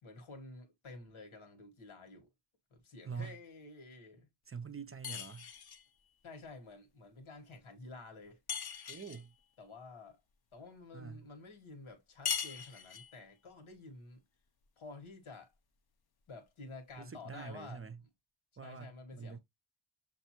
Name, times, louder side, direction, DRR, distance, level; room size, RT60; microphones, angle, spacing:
voice 1, 0.0-2.3 2.7-4.3 6.2-8.4 9.6-10.2 10.5-14.2 14.8-15.5 16.3-17.8 18.6-19.4, left 3 dB, 85° left, 1.4 m, -51 dB
voice 2, 4.5-5.5 8.9-9.3 10.9-11.3 17.0-18.0 18.6-19.4, right 6 dB, 30° right, 0.5 m, -45 dB
sound 1, 5.0-5.9 8.5-9.3 12.3-13.2, left 7 dB, 50° left, 0.7 m, -39 dB
6.7 x 2.6 x 2.8 m
wide cardioid pair, 75°, 47 cm